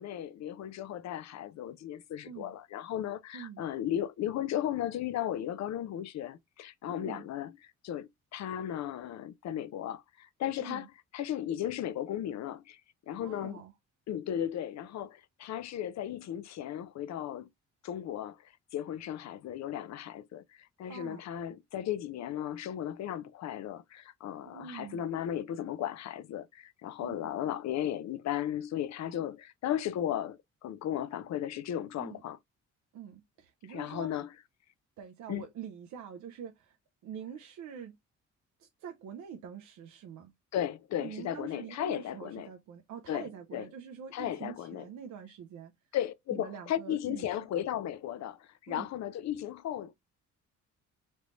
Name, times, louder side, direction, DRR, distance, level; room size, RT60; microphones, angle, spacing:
voice 1, 0.0-7.5 7.8-10.9 11.1-12.8 13.1-13.6 14.1-17.5 17.8-18.4 18.7-20.4 20.8-30.4 30.6-32.4 33.7-34.3 35.3-35.5 40.5-42.5 43.1-43.7 44.1-44.9 45.9-49.9, left 11 dB, 65° left, 0.6 m, -35 dB
voice 2, 6.9-7.2 10.6-10.9 13.2-13.7 20.9-21.2 24.5-25.0 27.0-27.2 32.0-32.2 32.9-34.1 35.0-36.8 37.0-38.0 38.6-40.3 41.0-45.7 46.3-47.4 48.7-48.9, right 7 dB, 70° right, 0.6 m, -45 dB
3.2 x 3.1 x 2.5 m
cardioid pair, 90°, 30 cm